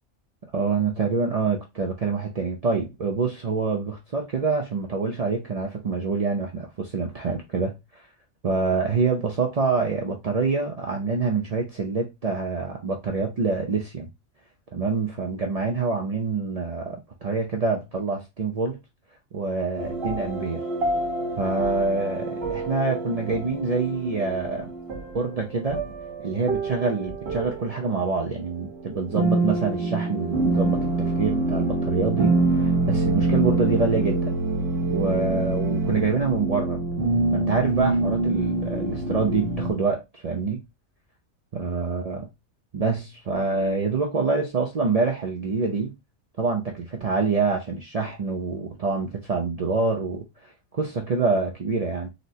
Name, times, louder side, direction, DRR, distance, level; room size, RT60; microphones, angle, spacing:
voice 1, 0.5-8.0 8.4-14.1 14.7-18.8 19.3-20.6 21.4-24.7 25.1-25.8 26.2-34.3 34.9-36.8 37.3-40.6 41.5-42.3 42.7-45.9 46.4-50.2 50.7-52.1, right 4 dB, 70° right, 0.3 m, -26 dB
sound 1, 19.8-39.7, right 2 dB, 50° right, 1.1 m, -26 dB
4.0 x 2.0 x 2.6 m
omnidirectional pair, 1.4 m